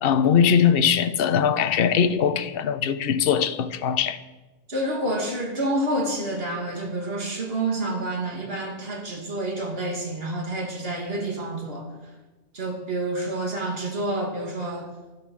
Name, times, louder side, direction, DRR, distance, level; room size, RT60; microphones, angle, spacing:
voice 1, 0.0-4.2, left 7 dB, 55° left, 0.9 m, -21 dB
voice 2, 4.7-11.9 12.5-14.9, right 1 dB, 55° right, 2.7 m, -28 dB
12.0 x 11.5 x 6.3 m
omnidirectional pair, 1.2 m